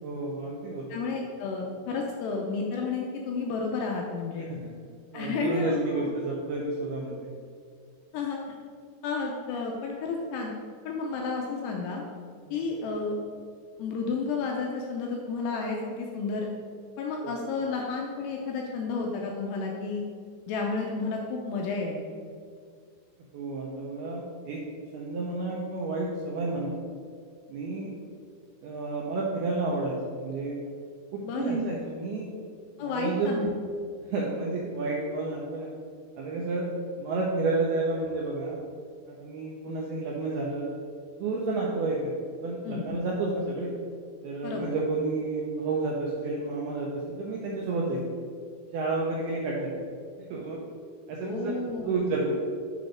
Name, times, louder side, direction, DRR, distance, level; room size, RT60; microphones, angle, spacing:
voice 1, 0.0-1.0 4.5-4.7 5.1-7.3 12.5-12.6 17.2-17.3 23.3-24.6 24.9-26.7 27.5-27.9 28.6-30.6 31.1-32.3 32.8-33.4 34.0-35.7 36.2-36.7 37.0-38.6 39.1-40.7 41.2-42.1 42.4-43.7 44.2-48.0 48.7-49.7 50.3-50.6 51.1-51.6 51.8-52.3, right 3 dB, 80° right, -2 dB, 2.3 m, -30 dB
voice 2, 0.9-4.5 5.1-5.8 8.1-8.6 9.0-10.5 10.9-12.0 12.5-13.2 13.8-16.5 17.0-20.0 20.5-22.2 31.2-31.6 32.8-33.5 42.6-43.0 44.4-44.8 51.2-52.1, left 4 dB, 80° left, 0 dB, 2.5 m, -31 dB
8.3 x 3.9 x 4.9 m, 2.1 s
omnidirectional pair, 5.3 m